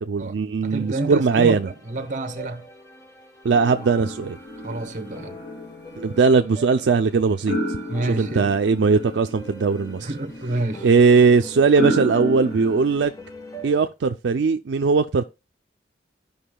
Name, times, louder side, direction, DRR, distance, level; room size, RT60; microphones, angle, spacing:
voice 1, 0.0-1.7 3.4-4.4 6.0-7.6 8.2-10.1 10.8-13.1 13.6-15.2, right 4 dB, 70° right, 0.4 m, -19 dB
voice 2, 0.6-2.6 4.6-5.4 7.9-8.5 10.0-10.9, right 2 dB, 45° right, 0.9 m, -28 dB
sound 1, 0.8-13.9, right 1 dB, 20° left, 0.9 m, -43 dB
sound 2, 3.5-13.1, equal, 80° left, 3.4 m, -32 dB
13.0 x 5.3 x 2.2 m
head